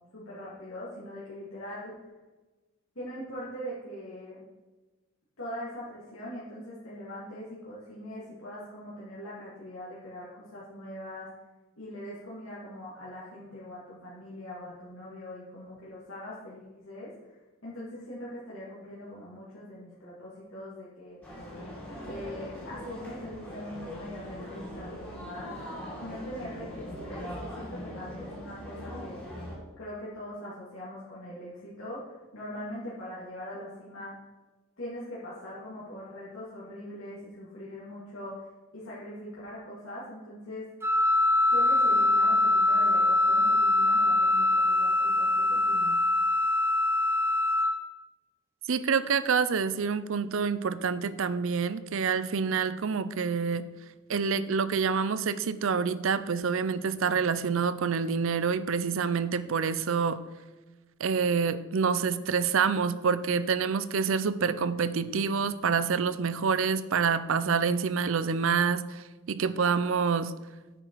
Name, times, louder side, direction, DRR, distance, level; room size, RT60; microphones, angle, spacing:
voice 1, 0.1-2.0 3.0-4.4 5.4-11.3 11.8-21.2 22.1-25.6 26.0-29.2 29.8-34.2 34.8-38.5 38.7-40.7 41.5-45.9, left 1 dB, 70° left, -8 dB, 2.3 m, -42 dB
sound 1, 21.2-29.6, equal, 10° left, 2.5 m, -41 dB
Wind instrument woodwind instrument, 40.8-47.7, left 2 dB, 10° right, 0.7 m, -23 dB
voice 2, 48.7-53.6 54.1-60.2 61.0-70.3, right 5 dB, 65° right, 15 dB, 0.5 m, -27 dB
9.0 x 6.5 x 4.6 m, 1.2 s
head